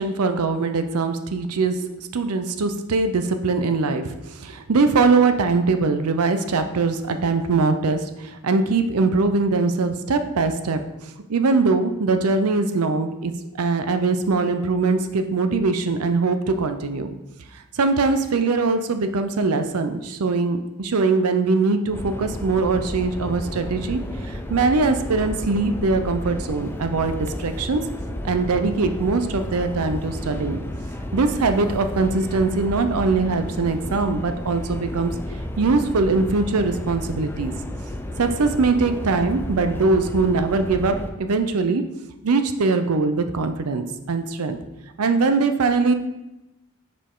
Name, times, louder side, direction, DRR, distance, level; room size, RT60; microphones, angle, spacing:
voice 1, 0.0-10.8 11.3-13.3 13.6-17.1 17.7-27.8 28.2-30.6 31.1-35.1 35.6-37.5 38.2-41.8 42.2-44.6 45.0-45.9, right 3 dB, 85° right, 8 dB, 0.6 m, -22 dB
sound 1, 21.9-41.1, left 1 dB, 10° left, 0.4 m, -32 dB
6.7 x 5.2 x 3.7 m, 0.95 s
head